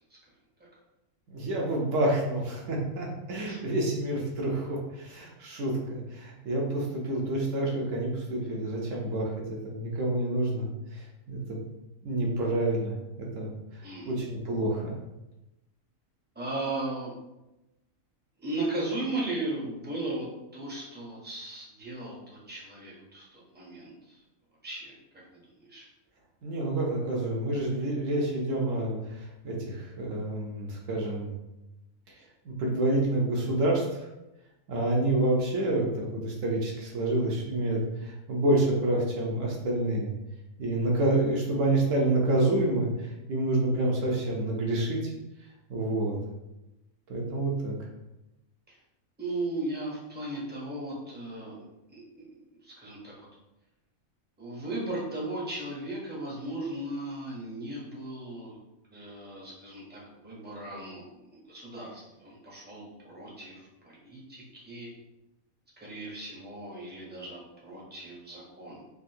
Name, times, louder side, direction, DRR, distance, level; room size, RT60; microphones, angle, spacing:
voice 1, 1.3-9.3 9.6-10.7 10.9-11.6 12.0-13.5 14.1-14.9 26.4-31.3 32.4-34.0 34.7-40.1 40.6-45.1 45.7-46.2 47.1-47.7, right 1 dB, 70° right, -1 dB, 1.1 m, -28 dB
voice 2, 13.8-14.2 16.4-17.1 18.4-20.3 20.5-24.2 24.6-24.9 25.6-25.9 49.2-51.6 51.9-52.3 52.6-53.3 54.4-58.6 58.9-64.9 65.8-68.8, right 2 dB, 10° right, -5 dB, 0.6 m, -36 dB
3.5 x 2.5 x 2.7 m, 0.95 s
omnidirectional pair, 1.4 m